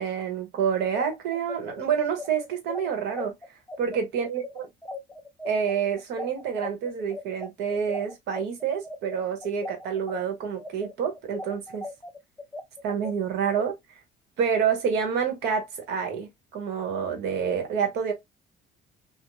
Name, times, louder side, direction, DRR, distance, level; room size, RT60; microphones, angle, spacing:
voice 1, 0.0-3.3 3.8-4.7 5.4-11.9 12.8-13.7 14.4-18.1, right 7 dB, 80° right, 1.0 m, -28 dB
sound 1, 0.8-10.2 10.6-13.7, left 2 dB, 10° left, 0.6 m, -38 dB
2.5 x 2.0 x 2.9 m
cardioid pair, 110°, 17 cm